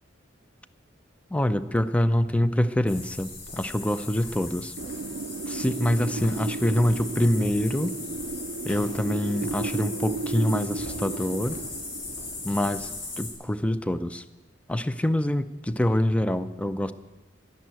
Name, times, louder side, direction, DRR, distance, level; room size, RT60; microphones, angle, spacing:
voice 1, 1.3-4.7 5.5-7.9 8.6-11.6 12.4-12.9 13.2-14.2 14.7-16.9, left 1 dB, 5° left, 12 dB, 0.5 m, -25 dB
sound 1, 2.9-13.3, left 3 dB, 80° left, 4.1 m, -38 dB
Wind, 4.8-13.5, right 4 dB, 65° right, 0.4 m, -35 dB
12.0 x 11.0 x 9.2 m, 1.2 s
head